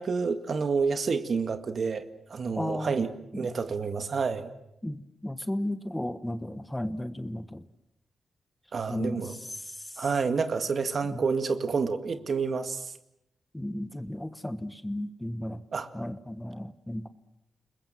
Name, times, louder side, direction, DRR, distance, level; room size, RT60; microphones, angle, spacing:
voice 1, 0.0-4.5 8.7-9.4 10.0-12.9 15.7-15.9, right 5 dB, 55° right, 9 dB, 2.0 m, -29 dB
voice 2, 2.6-2.9 3.4-3.5 4.8-7.6 8.9-9.2 9.6-10.0 11.0-11.2 13.5-15.6 15.9-17.1, left 1 dB, 10° left, 12 dB, 1.3 m, -34 dB
29.5 x 21.0 x 7.6 m, 0.84 s
cardioid pair, 90°, 0 cm